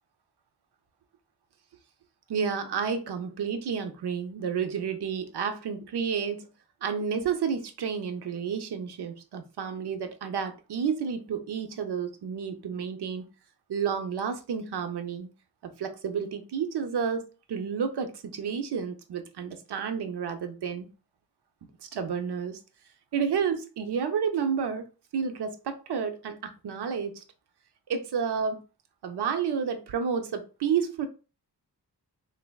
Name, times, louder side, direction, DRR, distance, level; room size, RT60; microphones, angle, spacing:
voice 1, 2.3-6.5 6.8-13.2 13.7-15.3 15.6-20.9 21.8-22.6 23.1-24.9 25.1-27.2 27.9-28.6 29.0-31.1, right 6 dB, 90° right, 0.6 m, -30 dB
3.3 x 3.2 x 2.2 m
wide cardioid pair, 135°, 39 cm